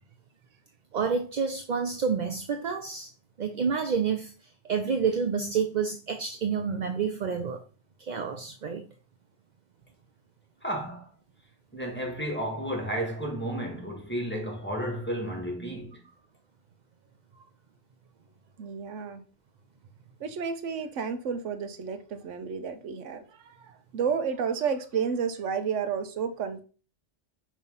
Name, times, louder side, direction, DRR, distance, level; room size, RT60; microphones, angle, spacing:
voice 1, 0.9-3.1 3.4-4.3 4.6-7.6 8.0-8.8, right 6 dB, 50° right, 0.6 m, -29 dB
voice 2, 10.6-11.1 11.7-16.0, equal, 10° left, 1.3 m, -32 dB
voice 3, 18.6-19.2 20.2-26.6, right 6 dB, 80° right, 1.1 m, -31 dB
5.6 x 3.1 x 5.4 m
omnidirectional pair, 1.2 m